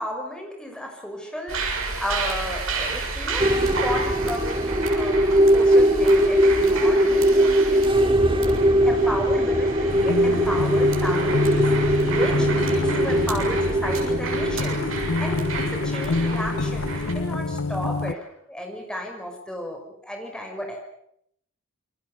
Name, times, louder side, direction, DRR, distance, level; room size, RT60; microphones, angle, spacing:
voice 1, 0.0-7.9 8.5-11.6 12.0-14.9 15.2-20.8, equal, 5° left, 2 dB, 6.2 m, -34 dB
sound 1, 1.5-17.1, right 3 dB, 80° right, 7.1 m, -31 dB
sound 2, 3.4-17.0, equal, 25° right, 2.4 m, -21 dB
sound 3, 9.9-18.1, left 3 dB, 90° left, 1.0 m, -27 dB
28.5 x 23.0 x 7.2 m, 0.71 s
head